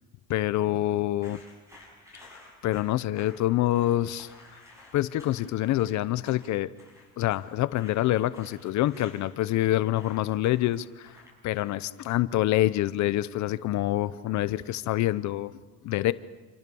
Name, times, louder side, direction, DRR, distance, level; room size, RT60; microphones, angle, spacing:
voice 1, 0.3-1.4 2.6-4.3 4.9-6.7 7.2-11.1 11.4-15.6 15.8-16.1, left 15 dB, 50° left, 15 dB, 0.7 m, -26 dB
sound 1, 1.2-12.0, left 2 dB, 10° right, 8.0 m, -53 dB
27.5 x 27.5 x 7.0 m, 1.3 s
cardioid pair, 155°, 36 cm